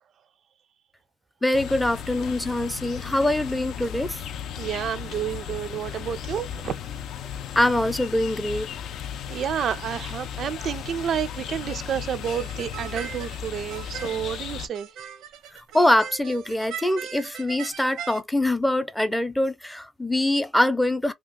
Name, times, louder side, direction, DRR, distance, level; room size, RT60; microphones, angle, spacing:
voice 1, 1.4-4.2 7.6-8.7 15.7-21.1, left 1 dB, 5° left, 0.5 m, -23 dB
sound 1, 1.5-14.7, left 9 dB, 80° left, 0.5 m, -35 dB
voice 2, 4.6-6.8 9.3-14.9, right 9 dB, 60° right, 0.3 m, -30 dB
sound 2, 12.2-18.2, right 8 dB, 90° right, 0.7 m, -40 dB
2.9 x 2.3 x 3.6 m
cardioid pair, 125°, 0 cm